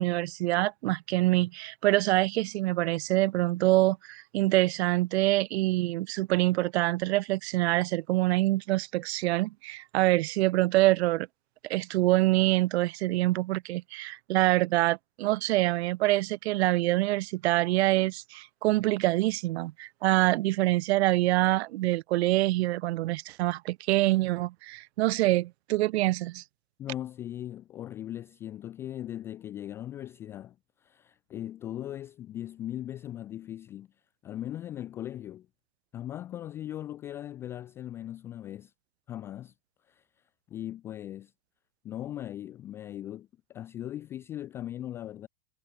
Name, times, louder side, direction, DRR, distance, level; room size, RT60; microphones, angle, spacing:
voice 1, 0.0-11.3 11.7-26.4, right 18 dB, 40° right, 2.2 m, -25 dB
voice 2, 26.8-33.9 34.2-35.5 35.9-38.7 39.1-39.5 39.9-40.1 40.5-41.3 41.8-45.3, left 12 dB, 5° left, 0.5 m, -39 dB
supercardioid pair, 175°, 49 cm